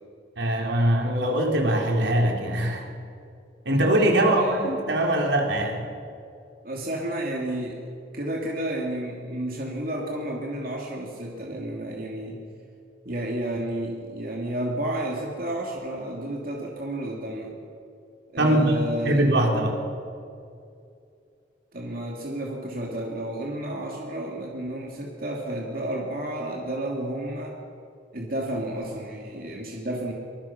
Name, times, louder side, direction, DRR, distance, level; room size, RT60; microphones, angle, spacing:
voice 1, 0.4-2.9 3.7-5.8 18.4-19.8, right 1 dB, 75° right, 1 dB, 4.0 m, -22 dB
voice 2, 4.1-4.7 6.6-7.8 8.1-12.4 13.0-17.5 18.3-19.3 21.7-27.6 28.1-30.1, right 1 dB, 50° right, -1 dB, 2.9 m, -31 dB
25.0 x 22.5 x 6.1 m, 2.5 s
head